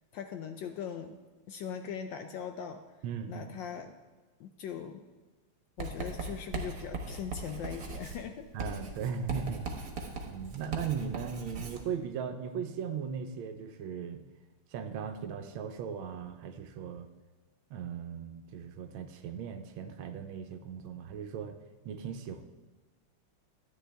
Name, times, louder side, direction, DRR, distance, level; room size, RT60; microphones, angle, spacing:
voice 1, 0.1-1.2 1.5-2.8 3.3-3.9 4.4-5.0 5.8-8.8, left 7 dB, 75° left, 6 dB, 1.1 m, -40 dB
voice 2, 3.0-3.5 8.5-9.9 10.3-14.2 14.7-17.1 17.7-21.6 21.8-22.4, right 7 dB, 75° right, 8 dB, 1.4 m, -38 dB
Writing, 5.8-11.8, right 3 dB, 50° right, 1.4 m, -39 dB
13.0 x 9.0 x 3.4 m, 1.2 s
omnidirectional pair, 2.4 m